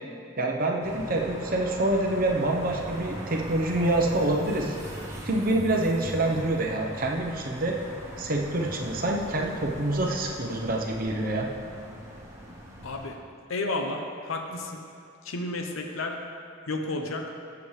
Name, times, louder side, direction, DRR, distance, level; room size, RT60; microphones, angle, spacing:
voice 1, 0.4-4.8 5.2-7.8 8.2-11.5, right 1 dB, 45° right, 0 dB, 0.9 m, -26 dB
sound 1, 0.8-13.1, equal, 15° right, 0.9 m, -40 dB
voice 2, 12.8-13.2 13.5-14.8 15.2-16.1 16.7-17.3, left 2 dB, 80° left, 3 dB, 0.8 m, -31 dB
14.0 x 7.1 x 3.3 m, 2.5 s
head